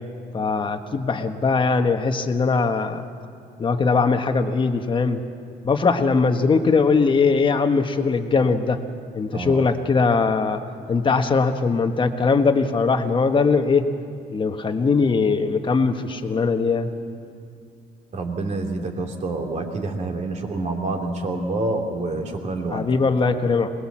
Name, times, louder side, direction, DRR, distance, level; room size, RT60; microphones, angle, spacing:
voice 1, 0.3-3.1 3.6-5.2 5.6-8.8 9.1-10.6 10.9-13.9 14.3-16.9 22.7-23.7, left 4 dB, 30° left, 6 dB, 1.5 m, -20 dB
voice 2, 9.3-9.6 18.1-22.9, right 2 dB, 45° right, 2 dB, 3.0 m, -27 dB
22.5 x 20.0 x 7.5 m, 2.4 s
cardioid pair, 110°, 17 cm